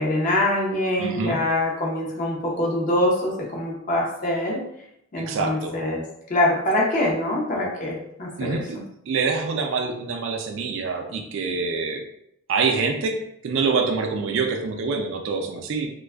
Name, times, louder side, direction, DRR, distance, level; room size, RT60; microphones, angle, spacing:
voice 1, 0.0-4.6 5.1-6.0 6.3-8.6, left 1 dB, 40° left, -2 dB, 0.5 m, -24 dB
voice 2, 1.0-1.4 5.2-5.7 8.4-8.8 9.1-12.0 12.5-13.2 13.4-15.9, right 4 dB, 65° right, 4 dB, 0.3 m, -25 dB
2.4 x 2.2 x 2.2 m, 0.77 s
head